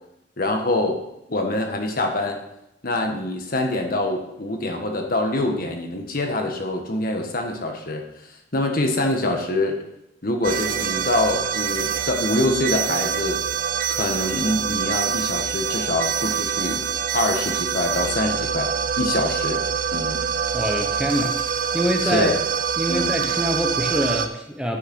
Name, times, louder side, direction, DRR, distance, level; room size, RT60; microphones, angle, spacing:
voice 1, 0.4-2.4 2.8-9.8 10.2-13.4 13.9-19.6 19.9-20.2 22.0-22.4 22.9-23.1, left 2 dB, 55° left, 3 dB, 1.5 m, -25 dB
sound 1, 10.4-24.3, right 7 dB, 50° right, 0.7 m, -25 dB
voice 2, 20.5-21.4 21.7-22.3 22.8-24.8, equal, 5° right, 2 dB, 0.9 m, -24 dB
9.4 x 6.6 x 6.2 m, 0.84 s
head